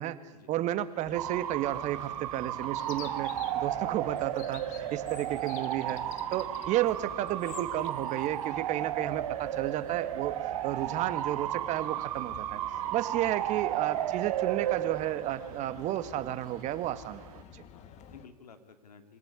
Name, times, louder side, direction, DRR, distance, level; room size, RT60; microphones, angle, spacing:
voice 1, 0.0-3.3 3.5-6.0 6.3-10.4 10.6-12.6 12.9-17.2 17.5-17.6, right 13 dB, 35° right, 12 dB, 1.9 m, -32 dB
sound 1, 1.0-18.3, left 8 dB, 35° left, 2.3 m, -51 dB
Bark / Motor vehicle (road) / Siren, 1.1-17.4, right 12 dB, 65° right, 1.6 m, -34 dB
Chirp tweet, 2.8-7.9, left 13 dB, 60° left, 1.6 m, -50 dB
voice 2, 17.7-19.2, left 5 dB, 85° left, 8 dB, 3.0 m, -54 dB
25.0 x 17.5 x 9.8 m, 1.3 s
hypercardioid pair, 105°, 20 cm